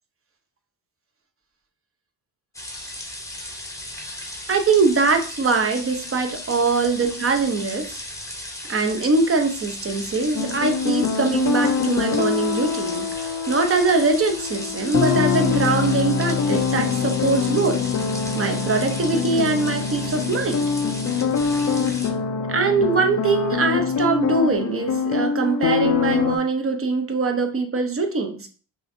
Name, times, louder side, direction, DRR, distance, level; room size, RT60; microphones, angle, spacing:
sound 1, 2.5-22.1, left 1 dB, 5° left, 0.8 m, -36 dB
voice 1, 4.5-8.0 8.7-17.8 18.3-20.7 22.5-28.5, right 4 dB, 30° right, 5 dB, 0.7 m, -22 dB
sound 2, 10.4-26.4, left 6 dB, 40° left, 0.5 m, -24 dB
5.6 x 2.6 x 2.7 m, 0.38 s
cardioid pair, 95°, 45 cm